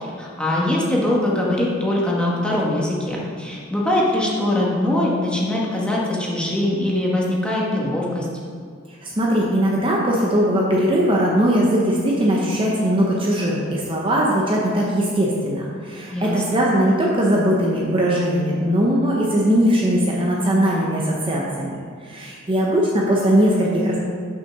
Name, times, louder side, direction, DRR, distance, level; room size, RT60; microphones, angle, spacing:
voice 1, 0.2-8.3 16.1-16.6, left 1 dB, 5° left, -4 dB, 1.4 m, -22 dB
voice 2, 8.9-24.0, equal, 25° right, -3 dB, 0.8 m, -20 dB
6.5 x 5.7 x 6.0 m, 2.1 s
head